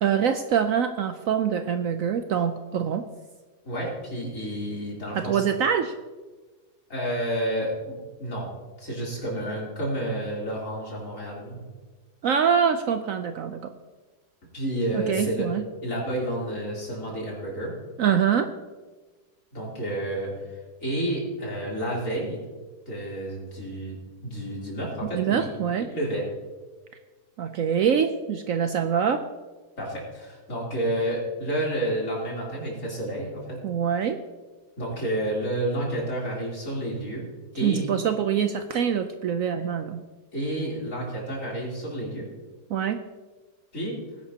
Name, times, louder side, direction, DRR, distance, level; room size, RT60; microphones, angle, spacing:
voice 1, 0.0-3.0 5.1-5.9 12.2-13.7 14.9-15.6 18.0-18.5 25.2-25.9 27.4-29.2 33.6-34.2 37.6-40.0 42.7-43.0, right 7 dB, 65° right, 8 dB, 0.9 m, -24 dB
voice 2, 3.7-5.4 6.9-8.5 8.8-11.6 14.5-15.5 15.8-17.7 19.5-20.3 20.8-22.4 22.9-24.0 24.2-25.5 25.8-26.3 29.8-33.6 34.8-37.3 37.5-37.9 40.3-42.3 43.7-44.0, right 1 dB, 50° left, -4 dB, 3.8 m, -30 dB
19.5 x 11.0 x 2.8 m, 1.3 s
omnidirectional pair, 1.7 m